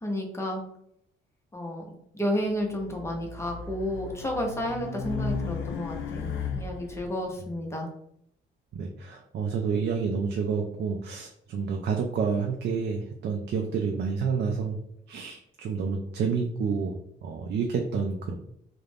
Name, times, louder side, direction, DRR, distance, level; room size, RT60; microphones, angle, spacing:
voice 1, 0.0-0.6 1.5-1.8 2.1-7.9, left 1 dB, 15° left, 0 dB, 0.7 m, -31 dB
Race car auto racing, 2.7-7.1, left 5 dB, 80° left, 0.5 m, -35 dB
voice 2, 8.7-14.8 15.1-18.3, right 5 dB, 55° right, 2 dB, 0.4 m, -29 dB
2.4 x 2.1 x 3.3 m, 0.73 s
cardioid pair, 90°, 20 cm